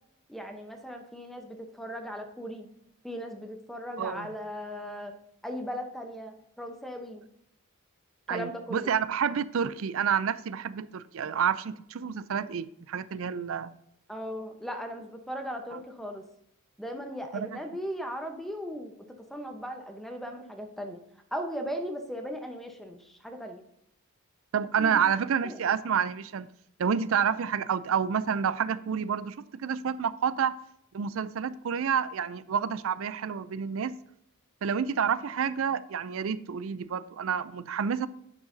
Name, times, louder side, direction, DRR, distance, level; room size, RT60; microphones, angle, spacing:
voice 1, 0.3-2.7 3.0-7.3 8.3-8.9 14.1-16.3 16.8-21.0 21.3-23.6 24.8-25.1 25.4-25.6, equal, ahead, 4 dB, 0.8 m, -38 dB
voice 2, 4.0-4.3 8.3-13.7 15.7-15.8 17.3-17.6 24.5-26.5 26.8-30.6 30.9-33.9 34.6-38.1, right 7 dB, 65° right, 16 dB, 0.4 m, -29 dB
9.9 x 6.4 x 2.7 m, 0.76 s
head